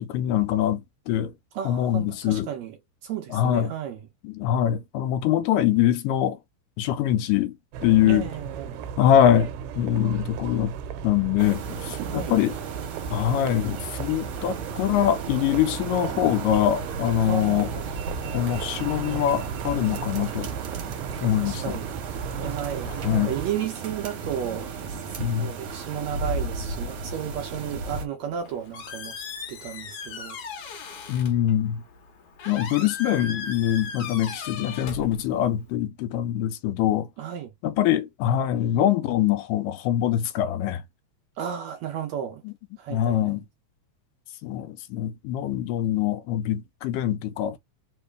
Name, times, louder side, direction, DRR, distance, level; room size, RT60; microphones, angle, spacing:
voice 1, 0.0-1.3 1.7-2.5 3.3-3.7 4.2-6.4 6.8-7.6 7.8-8.3 9.0-10.8 11.0-12.6 13.1-17.7 18.3-20.5 21.2-21.8 23.0-23.3 25.2-25.5 31.1-31.8 32.5-37.1 37.6-40.8 42.5-42.6 42.9-43.5 44.4-47.6, left 11 dB, 85° left, 2.2 m, -23 dB
voice 2, 1.5-2.8 3.0-4.0 8.0-8.9 12.1-12.4 17.3-18.3 21.3-21.9 22.4-29.2 29.5-30.4 37.2-37.5 41.4-42.4 42.8-43.4, right 9 dB, 75° right, 1.7 m, -34 dB
sound 1, 7.7-23.5, right 7 dB, 90° right, 2.3 m, -35 dB
sound 2, 11.4-28.1, right 5 dB, 55° right, 2.0 m, -35 dB
Squeak, 28.2-35.7, left 5 dB, 65° left, 1.4 m, -38 dB
4.8 x 3.0 x 3.3 m
omnidirectional pair, 3.8 m